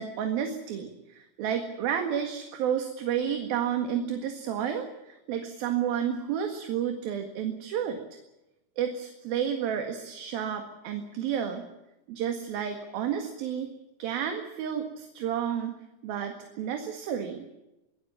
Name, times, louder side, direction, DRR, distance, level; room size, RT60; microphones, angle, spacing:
voice 1, 0.0-8.0 8.8-11.7 12.1-13.7 14.0-15.8 16.0-17.5, right 8 dB, 60° right, 5 dB, 3.4 m, -31 dB
23.5 x 20.0 x 7.3 m, 0.95 s
omnidirectional pair, 5.1 m